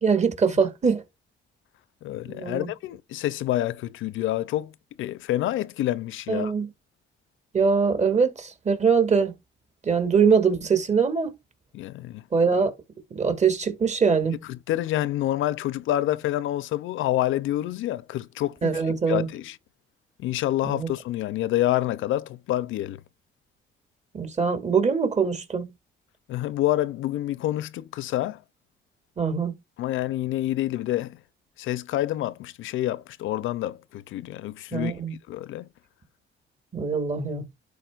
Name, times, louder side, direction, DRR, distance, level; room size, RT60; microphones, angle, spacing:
voice 1, 0.0-1.0 2.3-2.7 6.3-6.7 7.5-9.3 9.8-11.4 12.3-12.7 13.1-14.4 18.6-19.3 20.6-20.9 24.1-25.7 29.2-29.5 34.7-35.1 36.7-37.5, right 5 dB, 35° right, 2.1 m, -23 dB
voice 2, 2.0-4.7 5.0-6.5 11.7-12.2 14.5-18.8 19.1-19.5 20.2-23.0 26.3-28.4 29.8-31.2 31.6-34.9 35.3-35.7, left 14 dB, 80° left, 0.5 m, -27 dB
11.5 x 4.8 x 2.4 m
cardioid pair, 90°, 20 cm